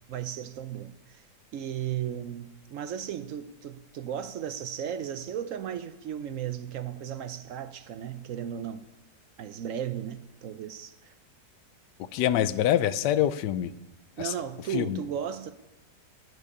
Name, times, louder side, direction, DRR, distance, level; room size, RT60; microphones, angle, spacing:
voice 1, 0.1-1.2 1.5-8.9 9.4-11.1 14.2-15.5, right 9 dB, 65° right, 0.8 m, -35 dB
voice 2, 12.1-13.7 14.2-14.3 14.7-15.0, left 11 dB, 80° left, 1.2 m, -25 dB
12.0 x 6.4 x 9.6 m
omnidirectional pair, 1.8 m